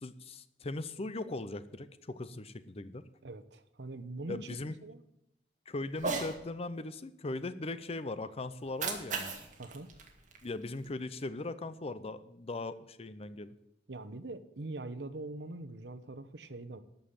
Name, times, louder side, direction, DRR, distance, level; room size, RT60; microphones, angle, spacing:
voice 1, 0.0-3.0 4.3-4.7 5.7-9.3 10.4-13.5, left 2 dB, 35° left, 13 dB, 0.6 m, -39 dB
voice 2, 3.2-4.5 4.8-5.0 9.6-9.9 13.9-16.8, right 2 dB, 70° right, 11 dB, 0.9 m, -43 dB
Cat, 5.9-6.4 8.5-10.9, right 4 dB, 45° right, 2.0 m, -38 dB
13.5 x 5.6 x 8.9 m, 0.82 s
head